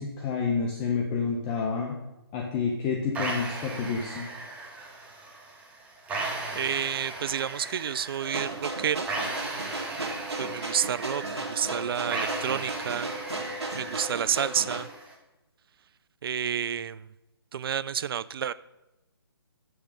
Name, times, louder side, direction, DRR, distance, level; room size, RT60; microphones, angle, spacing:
voice 1, 0.0-2.0 2.3-4.3, left 5 dB, 25° left, 0 dB, 0.9 m, -29 dB
sound 1, 3.2-15.1, right 2 dB, 10° right, 1.3 m, -37 dB
voice 2, 6.5-9.1 10.4-13.1 13.7-14.9 16.2-17.1 17.5-18.5, right 8 dB, 60° right, 17 dB, 0.4 m, -30 dB
sound 2, 8.2-14.8, right 2 dB, 85° right, 1.5 m, -35 dB
8.1 x 6.2 x 5.0 m, 0.99 s
hypercardioid pair, 145°, 14 cm